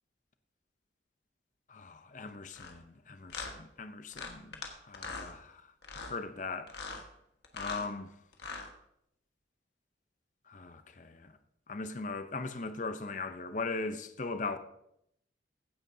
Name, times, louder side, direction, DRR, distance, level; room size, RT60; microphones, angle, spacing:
voice 1, 1.7-5.6 6.0-6.7 7.5-8.1 10.5-11.3 11.7-14.6, left 3 dB, 40° left, 0.6 m, -39 dB
sound 1, 2.5-2.7 3.3-3.5 4.1-4.7 4.9-5.3 5.8-6.1 6.7-7.0 7.4-7.9 8.3-8.7, left 4 dB, 65° left, 1.5 m, -41 dB
16.0 x 9.3 x 2.7 m
head